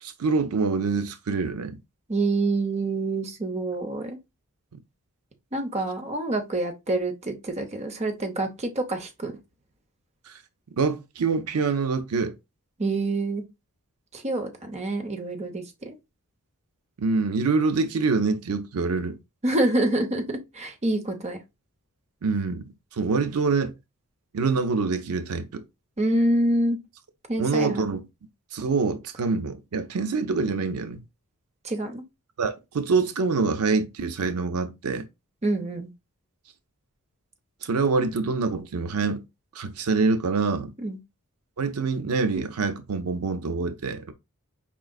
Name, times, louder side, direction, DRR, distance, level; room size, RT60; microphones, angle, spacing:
voice 1, 0.0-1.8 10.3-10.4 10.8-12.3 17.0-19.2 22.2-23.7 24.3-25.6 27.4-28.0 28.5-31.0 32.4-35.1 37.6-39.2 39.5-40.7 41.6-44.1, right 4 dB, 80° right, 0.5 m, -25 dB
voice 2, 2.1-4.2 5.5-9.3 12.8-13.4 14.1-15.9 19.4-21.4 26.0-26.8 27.3-27.9 31.6-32.0 35.4-35.9 40.8-41.0, right 2 dB, 30° right, 0.8 m, -26 dB
4.8 x 3.7 x 2.3 m
head